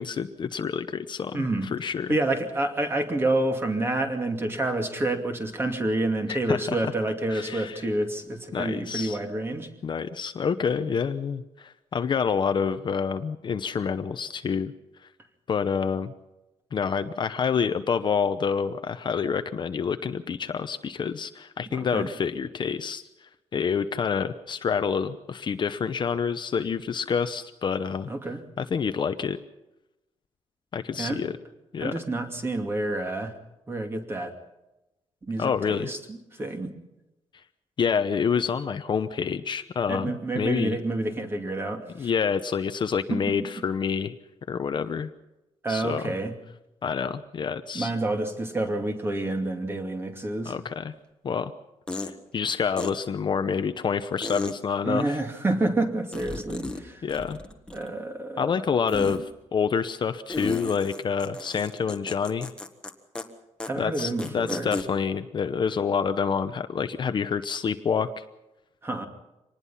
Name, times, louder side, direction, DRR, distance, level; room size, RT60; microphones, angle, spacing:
voice 1, 0.0-2.2 6.3-6.8 7.3-7.9 8.5-9.2 9.8-14.7 15.5-16.1 16.7-23.0 23.5-28.1 28.6-29.4 30.7-31.3 31.7-31.9 35.4-35.9 37.8-40.8 42.0-44.1 44.5-45.1 45.7-46.0 46.8-47.9 50.4-50.9 51.2-51.5 52.0-55.2 57.0-57.4 58.4-62.5 63.8-68.2, left 6 dB, 40° left, 9 dB, 0.9 m, -27 dB
voice 2, 1.3-1.7 2.1-9.7 21.9-22.1 28.1-28.4 31.0-31.2 31.8-33.3 33.7-34.3 35.3-36.7 39.9-42.1 43.1-43.4 45.6-46.3 47.7-50.5 54.8-57.0 57.7-58.6 63.6-64.7 68.8-69.1, right 2 dB, 20° right, 5 dB, 2.5 m, -28 dB
sound 1, 51.0-51.1 51.9-52.1 52.8-52.9 54.2-54.5 56.1-56.8 57.1-58.0 58.9-59.2 60.3-62.9 63.2-63.3 63.6-63.7 64.0-64.8, left 2 dB, 10° left, 1.5 m, -34 dB
25.0 x 19.5 x 5.8 m, 0.96 s
wide cardioid pair, 160°, 12 cm